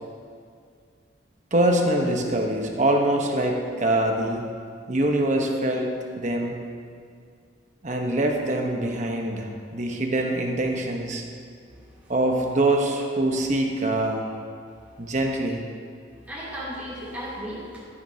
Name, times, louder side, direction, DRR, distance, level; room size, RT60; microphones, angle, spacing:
voice 1, 1.5-4.5 4.9-5.9 6.1-6.6 7.8-11.2 12.1-14.2 15.0-15.6, right 1 dB, 40° right, 2 dB, 1.0 m, -24 dB
voice 2, 11.7-12.1 15.0-15.1 16.2-17.8, equal, 10° right, -9 dB, 2.9 m, -36 dB
12.5 x 10.5 x 2.8 m, 2.3 s
head